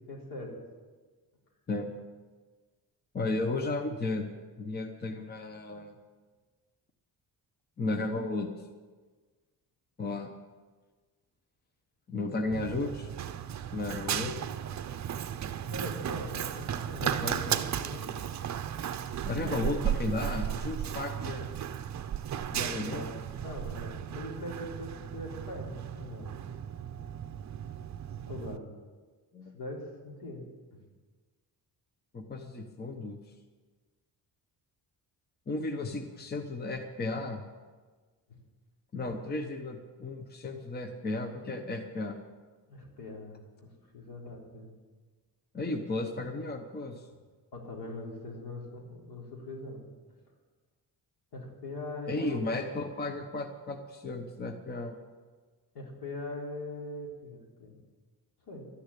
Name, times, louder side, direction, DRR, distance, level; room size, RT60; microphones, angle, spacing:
voice 1, 0.1-0.5 15.6-18.1 19.4-19.6 20.8-21.0 22.5-26.3 28.3-28.6 29.5-30.5 38.3-38.4 42.7-44.7 47.5-49.8 51.3-52.6 55.7-57.8 58.5-58.7, left 1 dB, 80° left, -1 dB, 3.8 m, -42 dB
voice 2, 3.1-4.3 4.6-5.9 7.8-8.5 10.0-10.3 12.1-13.1 13.7-14.4 17.0-17.6 19.3-21.5 22.5-23.0 29.3-29.5 32.1-33.2 35.5-37.4 38.9-42.2 45.5-47.0 52.1-55.0, left 2 dB, 25° left, 5 dB, 1.0 m, -34 dB
Run, 12.5-28.6, right 9 dB, 45° right, 0.6 m, -35 dB
13.0 x 10.0 x 8.4 m, 1.4 s
wide cardioid pair, 155°, 39 cm